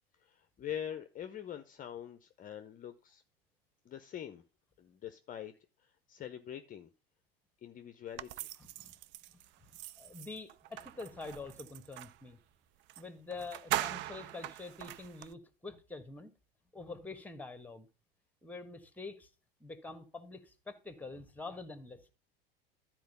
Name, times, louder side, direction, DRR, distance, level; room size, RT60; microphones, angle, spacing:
voice 1, 0.2-3.2 3.8-4.4 4.8-5.5 5.8-6.9 7.6-8.5, left 10 dB, 30° left, 0.8 m, -44 dB
sound 1, 8.2-12.2 12.9-13.0 13.3-15.3, right 14 dB, 40° right, 0.5 m, -41 dB
voice 2, 8.6-8.9 9.3-9.4 10.0-12.4 13.0-16.3 16.7-17.9 18.4-19.3 19.6-22.1, left 3 dB, 5° left, 1.5 m, -46 dB
12.5 x 4.6 x 5.4 m
figure-of-eight pair, 80°, 30 cm